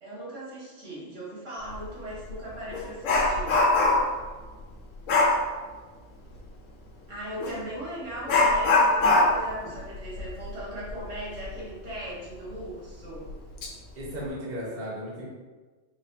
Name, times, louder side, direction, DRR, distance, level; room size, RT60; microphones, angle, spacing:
voice 1, 0.0-3.6 7.1-13.3, right 1 dB, 80° right, -7 dB, 1.8 m, -38 dB
Dog, 1.7-1.9 2.3-4.2 5.1-5.4 7.4-7.6 8.3-11.6 11.9-12.0 12.5-12.6 13.3-13.7 14.0-14.3, left 2 dB, 85° left, 1.0 m, -23 dB
voice 2, 14.0-15.3, equal, 50° right, -6 dB, 1.2 m, -35 dB
4.2 x 3.4 x 2.7 m, 1.3 s
omnidirectional pair, 1.3 m